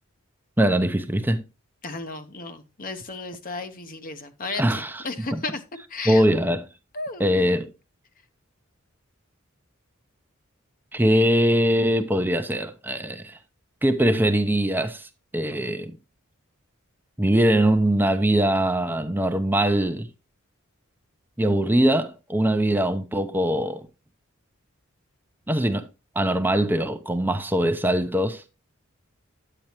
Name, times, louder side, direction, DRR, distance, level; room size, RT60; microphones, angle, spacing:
voice 1, 0.6-1.4 4.6-5.0 5.3-5.4 6.1-6.6 7.2-7.7 10.9-13.4 13.8-16.0 17.2-20.1 21.4-23.9 25.5-25.9 26.2-28.4, right 1 dB, 10° right, 0.6 m, -22 dB
voice 2, 1.8-5.6 5.9-6.2 6.9-7.6, left 3 dB, 40° left, 0.9 m, -34 dB
9.3 x 8.8 x 2.9 m
head